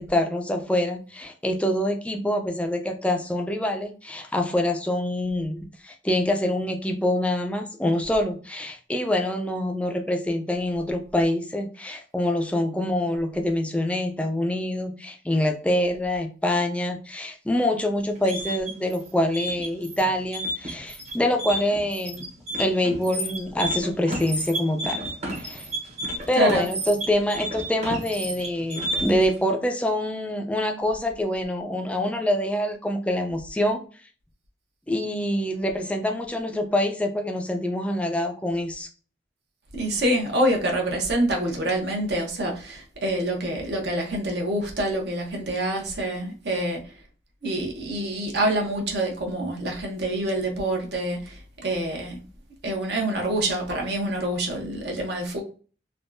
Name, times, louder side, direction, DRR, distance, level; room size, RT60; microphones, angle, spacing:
voice 1, 0.0-22.2 22.6-25.7 26.3-33.8 34.9-38.9, left 1 dB, 5° left, 0.4 m, -25 dB
sound 1, 18.0-29.3, equal, 40° right, 0.9 m, -31 dB
voice 2, 26.3-26.7 39.7-46.8 47.4-52.2 52.6-55.4, right 1 dB, 65° right, 0.9 m, -26 dB
3.5 x 2.3 x 2.5 m
head